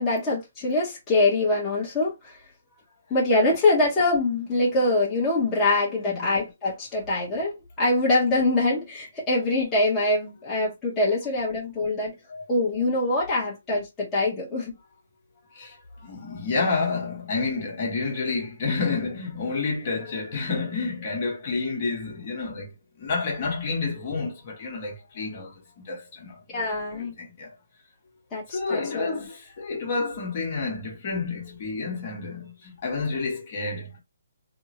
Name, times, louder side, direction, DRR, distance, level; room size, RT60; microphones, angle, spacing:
voice 1, 0.0-2.4 3.1-12.1 12.5-14.7 26.5-27.1 28.3-29.2, left 2 dB, 15° left, 1.0 m, -24 dB
voice 2, 5.9-6.3 12.3-12.5 15.5-22.7 23.0-26.6 26.9-27.5 28.5-34.0, left 4 dB, 40° left, 1.2 m, -30 dB
3.5 x 2.1 x 2.8 m
hypercardioid pair, 160°, 0 cm